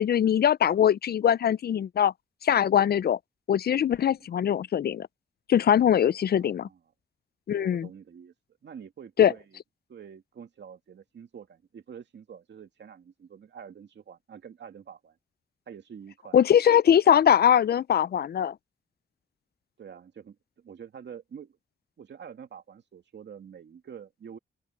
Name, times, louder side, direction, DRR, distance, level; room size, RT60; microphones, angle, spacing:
voice 1, 0.0-2.1 2.4-3.2 3.5-5.1 5.5-6.7 7.5-7.9 9.2-9.3 16.3-18.5, left 9 dB, 60° left, 0.4 m, -22 dB
voice 2, 6.3-6.8 7.5-8.3 8.6-9.6 9.9-15.2 15.7-16.4 17.2-17.3 19.8-21.6 22.0-24.4, right 7 dB, 80° right, 2.4 m, -46 dB
open air
cardioid pair, 70°, 18 cm